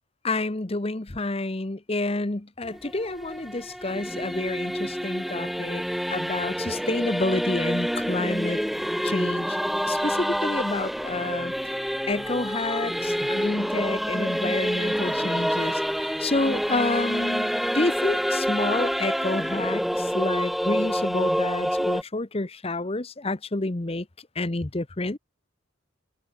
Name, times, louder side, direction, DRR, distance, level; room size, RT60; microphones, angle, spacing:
voice 1, 0.2-5.8 6.1-8.6 9.0-9.6 9.8-11.5 12.1-17.5 17.7-24.1 24.4-25.2, left 2 dB, 25° left, 0.9 m, -29 dB
Singing / Musical instrument, 2.6-22.0, equal, ahead, 0.8 m, -27 dB
open air
head